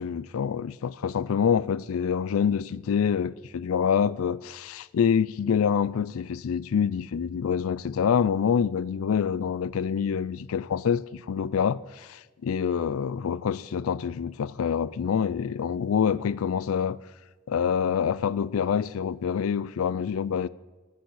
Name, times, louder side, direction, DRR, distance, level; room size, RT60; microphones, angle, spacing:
voice 1, 0.0-17.0 17.5-20.5, left 7 dB, 85° left, 0.4 m, -26 dB
10.5 x 10.0 x 8.5 m
head